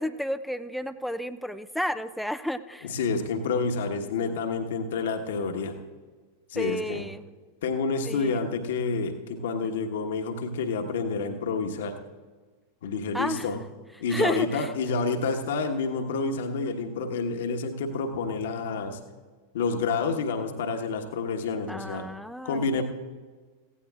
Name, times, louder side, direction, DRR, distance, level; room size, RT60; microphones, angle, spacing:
voice 1, 0.0-2.9 6.6-7.2 8.0-8.4 13.1-13.5 14.1-14.7 21.7-22.8, equal, ahead, 12 dB, 0.4 m, -31 dB
voice 2, 2.8-5.8 6.5-7.0 7.6-12.0 12.8-13.6 14.0-19.0 19.5-22.1 22.4-22.8, left 4 dB, 60° left, 4 dB, 1.3 m, -29 dB
17.0 x 16.0 x 2.4 m, 1.4 s
figure-of-eight pair, 90°, 0 cm